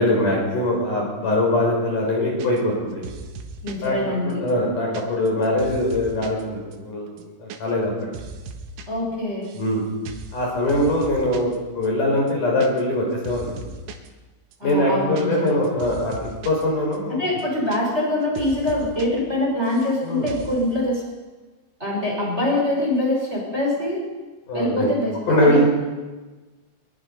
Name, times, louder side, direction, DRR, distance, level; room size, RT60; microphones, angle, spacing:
voice 1, 0.0-3.1 3.8-3.9 4.2-7.1 7.4-7.9 9.6-9.8 10.3-13.6 14.6-17.2 20.0-20.3 24.5-24.9 25.3-25.7, left 1 dB, 45° left, -1 dB, 6.2 m, -22 dB
sound 1, 2.4-2.8 3.0-3.9 4.3-6.4 6.7-6.8 7.1-7.6 7.8-8.9 9.1-9.7 10.1-10.4 10.7-11.6 11.8-11.9 12.2-13.0 13.2-14.1 14.5-16.6 16.9-17.0 17.3-18.1 18.4-19.1 19.3-20.0 20.3-20.6, right 4 dB, 85° right, 4.1 m, -38 dB
voice 2, 3.6-4.4 8.9-9.4 14.6-15.5 17.2-21.0 21.8-24.0 24.5-25.2 25.4-25.7, left 1 dB, 15° right, -2 dB, 6.3 m, -24 dB
24.0 x 21.5 x 5.4 m, 1.2 s
omnidirectional pair, 5.4 m